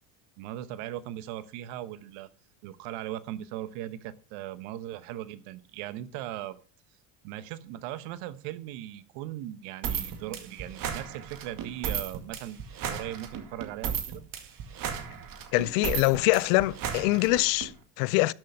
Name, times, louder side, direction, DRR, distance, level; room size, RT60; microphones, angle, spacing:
voice 1, 0.4-2.3 2.6-6.6 7.2-12.6 12.8-14.2, right 13 dB, 70° right, 1.1 m, -38 dB
sound 1, 9.8-17.7, right 8 dB, 50° right, 2.1 m, -35 dB
voice 2, 15.5-18.3, left 21 dB, 70° left, 0.6 m, -24 dB
12.5 x 6.4 x 5.4 m
hypercardioid pair, 85°, 42 cm